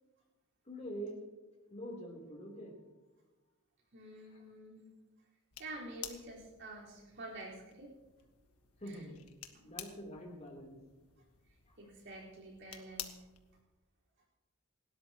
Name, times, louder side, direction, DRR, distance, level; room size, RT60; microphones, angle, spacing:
voice 1, 0.7-1.3 1.7-2.8 4.3-4.4 8.8-9.2 9.6-10.8 11.7-11.8, equal, 30° left, -1 dB, 3.3 m, -45 dB
voice 2, 3.9-4.9 5.6-7.9 8.9-9.0 9.5-9.7 11.8-13.2, right 2 dB, 55° right, -4 dB, 4.5 m, -48 dB
sound 1, 5.5-13.6, left 10 dB, 85° left, 1.5 m, -52 dB
28.5 x 12.5 x 3.0 m, 1.2 s
head